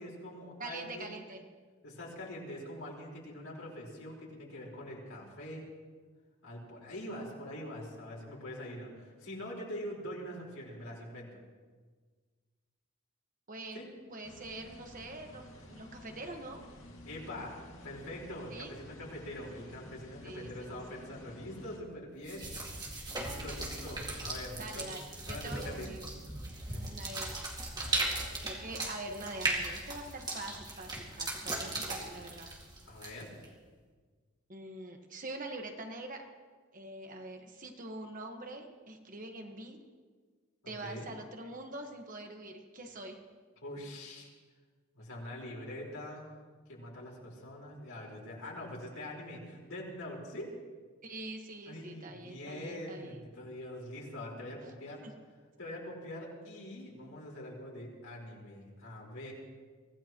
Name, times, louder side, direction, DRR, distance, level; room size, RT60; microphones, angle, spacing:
voice 1, 0.0-1.1 1.8-5.7 6.4-11.3 13.7-13.9 17.0-22.5 23.1-24.9 25.3-26.2 26.7-26.9 32.9-33.3 40.6-41.1 43.6-44.3 44.9-46.3 46.7-50.5 51.7-55.0 55.6-59.3, left 1 dB, 85° left, -3 dB, 4.7 m, -44 dB
voice 2, 0.6-1.4 13.5-13.8 14.1-16.6 18.5-18.7 19.6-19.7 20.2-21.4 24.6-26.1 26.6-27.3 27.8-32.5 34.5-36.2 36.7-39.8 40.7-43.2 51.0-53.2 55.0-55.1, right 2 dB, 40° right, 3 dB, 1.5 m, -44 dB
sound 1, 14.2-21.8, left 1 dB, 65° left, 2.3 m, -52 dB
sound 2, 22.2-33.4, right 2 dB, 20° right, 2.2 m, -38 dB
24.5 x 16.0 x 3.1 m, 1.5 s
head